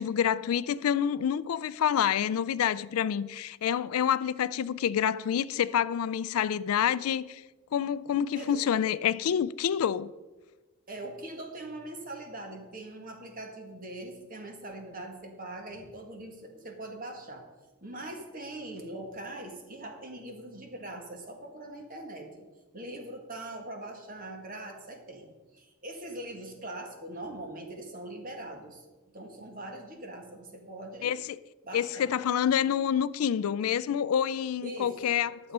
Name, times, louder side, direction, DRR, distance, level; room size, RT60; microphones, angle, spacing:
voice 1, 0.0-7.4 7.7-10.1 31.0-31.4 31.7-35.5, left 8 dB, 90° left, 0.4 m, -28 dB
voice 2, 10.9-17.5 17.8-22.5 22.7-28.8 29.1-31.1 31.6-32.1 34.6-35.1, right 1 dB, 40° right, 1.7 m, -42 dB
11.5 x 7.1 x 5.4 m
head